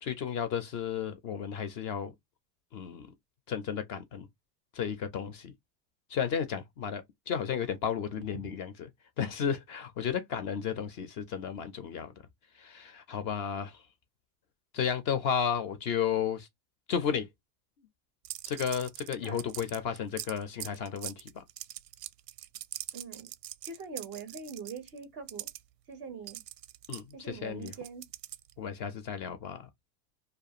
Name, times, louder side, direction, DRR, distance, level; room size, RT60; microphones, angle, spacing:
voice 1, 0.0-2.1 2.7-3.1 3.5-4.3 4.7-5.5 6.1-8.9 9.2-12.1 12.5-13.9 14.7-16.5 16.9-17.3 18.4-21.4 26.9-27.7 28.6-29.7, left 7 dB, 35° left, 0.4 m, -33 dB
sound 1, 18.3-25.6 26.3-28.6, right 14 dB, 90° right, 0.6 m, -42 dB
voice 2, 22.9-23.3 23.6-25.5 25.9-26.4 27.1-28.1, right 5 dB, 25° right, 0.4 m, -43 dB
2.4 x 2.3 x 2.6 m
supercardioid pair, 130°, 48 cm